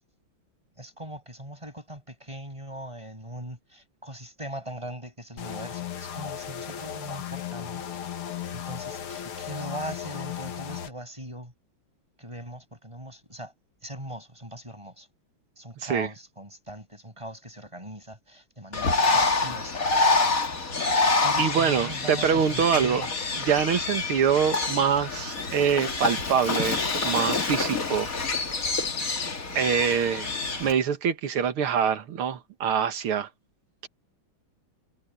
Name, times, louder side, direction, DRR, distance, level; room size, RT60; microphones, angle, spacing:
voice 1, 0.8-8.0 8.5-11.5 12.2-13.5 13.8-15.1 15.6-20.1 21.2-23.1, right 1 dB, 15° right, 7.5 m, -40 dB
sound 1, 5.4-10.9, left 9 dB, 85° left, 2.3 m, -36 dB
voice 2, 15.8-16.1 21.4-23.0 23.5-28.1 29.6-30.3 30.6-33.3, right 7 dB, 90° right, 2.4 m, -25 dB
Bird, 18.7-30.7, left 3 dB, 40° left, 2.7 m, -27 dB
omnidirectional pair, 2.3 m